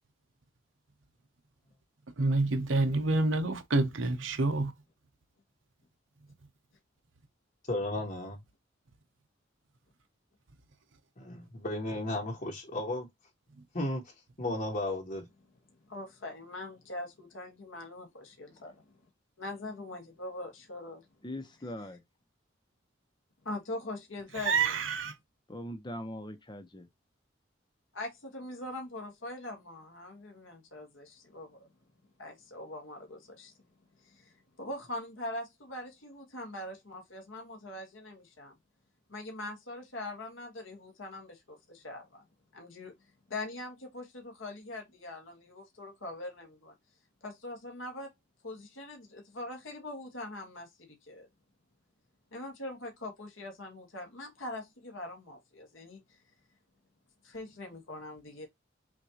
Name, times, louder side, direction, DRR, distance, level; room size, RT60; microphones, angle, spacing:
voice 1, 2.2-4.7 24.5-25.1, right 3 dB, 80° right, 0.9 m, -27 dB
voice 2, 7.7-8.4 11.2-13.1 13.7-14.1 14.4-15.3, left 1 dB, 45° left, 1.2 m, -34 dB
voice 3, 15.9-19.1 19.4-21.1 23.4-24.7 27.9-31.7 32.2-33.5 34.0-38.5 39.1-42.2 42.5-42.9 43.3-46.7 47.2-48.1 48.4-51.3 52.3-56.2 57.2-58.5, left 2 dB, 85° left, 1.5 m, -42 dB
voice 4, 21.2-22.0 25.5-26.9, left 1 dB, 25° left, 0.9 m, -41 dB
6.2 x 2.6 x 2.9 m
head